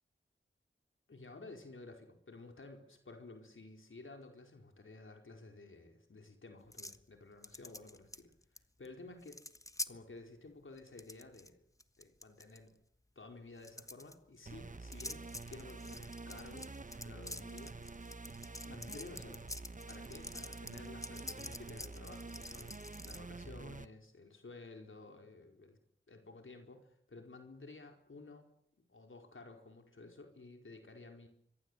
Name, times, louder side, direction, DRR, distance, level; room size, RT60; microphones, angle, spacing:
voice 1, 1.1-8.3 8.8-9.4 9.9-11.6 12.0-12.7 13.2-17.7 18.6-19.4 19.9-25.8 26.1-28.5 28.9-31.3, left 3 dB, 75° left, 4 dB, 4.6 m, -53 dB
sound 1, 6.7-7.0 7.4-8.6 8.8-8.9 9.2-9.9 10.8-11.5 11.8-12.6 13.6-14.1 14.9-23.2, left 1 dB, 15° left, 1.3 m, -47 dB
sound 2, 14.5-23.9, right 3 dB, 40° right, 1.2 m, -48 dB
26.0 x 23.5 x 8.1 m, 0.68 s
wide cardioid pair, 70°, 21 cm